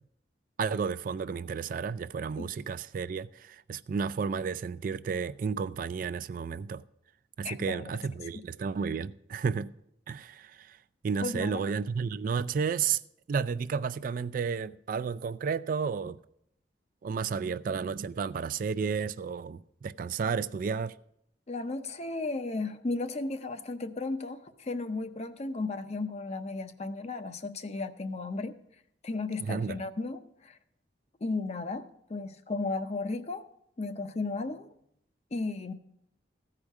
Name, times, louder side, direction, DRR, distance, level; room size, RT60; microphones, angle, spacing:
voice 1, 0.6-6.8 7.4-9.7 10.1-10.8 11.0-13.0 13.3-16.2 17.0-21.0 29.4-29.8, right 6 dB, 50° right, 0.3 m, -32 dB
voice 2, 7.4-7.9 8.2-8.4 11.2-11.7 21.5-28.6 29.0-30.6 31.2-33.5 33.8-34.7 35.3-35.7, left 3 dB, 35° left, 0.6 m, -34 dB
14.5 x 5.0 x 7.2 m
head